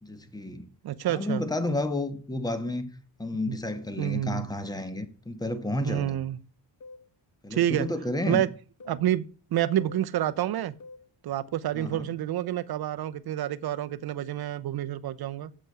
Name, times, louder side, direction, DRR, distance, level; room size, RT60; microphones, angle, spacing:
voice 1, 0.0-0.7 1.1-2.9 3.2-6.2 7.4-8.4 11.7-12.1, left 1 dB, 10° left, 1.3 m, -31 dB
voice 2, 0.8-1.4 3.5-3.6 4.0-4.5 5.8-6.4 7.5-7.9 8.3-8.5 8.9-10.7 11.2-15.5, right 12 dB, 65° right, 0.8 m, -28 dB
sound 1, 6.8-7.1 7.8-8.1 8.8-9.1 9.8-10.1 10.8-11.1 11.8-12.1, left 3 dB, 50° left, 1.4 m, -47 dB
8.0 x 6.3 x 7.4 m
cardioid pair, 100°, 41 cm